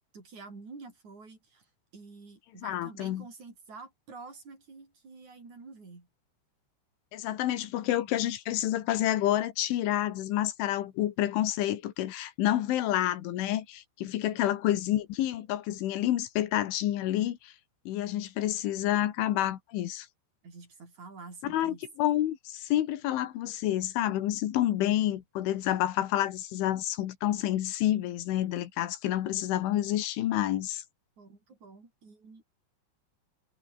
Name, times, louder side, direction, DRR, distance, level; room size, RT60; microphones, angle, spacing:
voice 1, 0.1-1.7 1.9-6.1 14.3-14.6 20.4-21.8 31.2-32.4, right 4 dB, 40° right, 8.1 m, -48 dB
voice 2, 2.6-3.3 7.1-17.5 17.9-20.1 21.4-30.8, left 13 dB, 85° left, 4.2 m, -29 dB
omnidirectional pair, 5.4 m